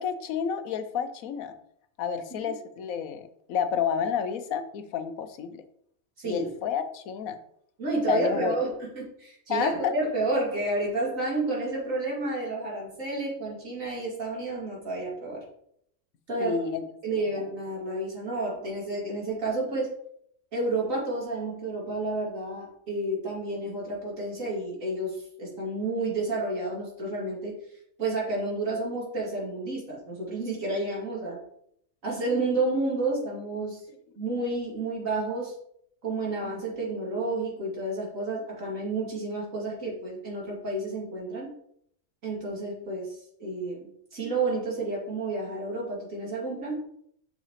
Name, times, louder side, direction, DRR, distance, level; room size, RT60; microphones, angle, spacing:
voice 1, 0.0-1.5 2.0-5.6 6.2-7.4 8.1-8.6 9.5-9.9 16.4-16.8, left 7 dB, 90° left, 10 dB, 1.1 m, -30 dB
voice 2, 7.8-15.4 16.3-16.6 17.0-19.9 20.5-27.5 28.0-31.4 32.0-33.8 34.2-35.5 36.0-41.5 42.2-46.8, right 2 dB, 70° right, -4 dB, 3.0 m, -30 dB
7.3 x 6.5 x 3.1 m, 0.69 s
omnidirectional pair, 1.4 m